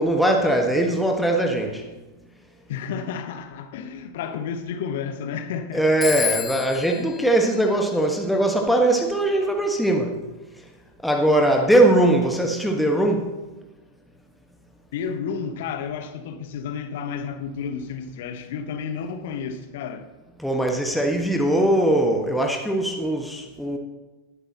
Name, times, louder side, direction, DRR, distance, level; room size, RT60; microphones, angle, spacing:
voice 1, 0.0-1.8 5.7-10.2 11.0-13.3 20.4-23.8, right 1 dB, ahead, 1 dB, 1.4 m, -20 dB
voice 2, 2.7-5.9 6.2-6.3 14.9-20.1, left 6 dB, 55° left, 7 dB, 1.1 m, -31 dB
Telephone, 6.0-8.5, left 7 dB, 20° left, 0.6 m, -32 dB
18.5 x 8.2 x 3.0 m, 1.1 s
figure-of-eight pair, 90°, 0 cm